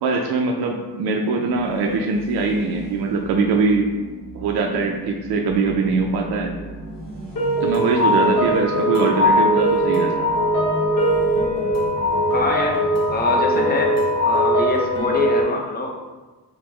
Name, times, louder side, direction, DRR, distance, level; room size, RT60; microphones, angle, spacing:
voice 1, 0.0-3.9 4.3-6.5 7.6-10.3, right 4 dB, 70° right, 1 dB, 0.5 m, -22 dB
sound 1, 1.4-13.3, right 1 dB, 55° right, 1.3 m, -37 dB
sound 2, 7.4-15.4, equal, 55° left, 0.9 m, -20 dB
voice 2, 12.3-12.8 13.1-15.9, left 2 dB, 25° left, 0 dB, 0.5 m, -24 dB
5.1 x 2.1 x 3.0 m, 1.2 s
wide cardioid pair, 130°, 40 cm